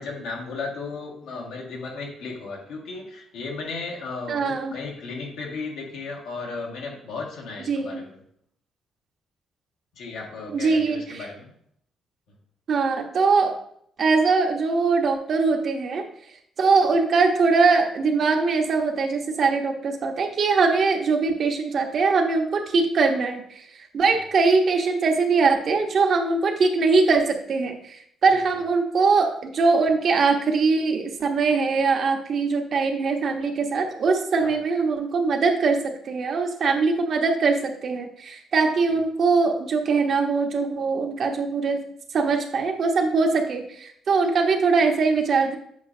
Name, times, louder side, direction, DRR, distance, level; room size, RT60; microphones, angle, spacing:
voice 1, 0.0-8.2 10.0-11.5 24.0-24.2 28.3-28.6 34.4-34.6 38.9-39.0, left 4 dB, 90° left, -2 dB, 1.9 m, -35 dB
voice 2, 4.3-4.7 7.7-8.0 10.5-11.3 12.7-13.5 14.0-16.0 16.6-23.6 23.9-41.8 42.1-45.6, right 4 dB, 60° right, 3 dB, 1.0 m, -22 dB
7.9 x 5.1 x 2.7 m, 0.67 s
cardioid pair, 90°, 0 cm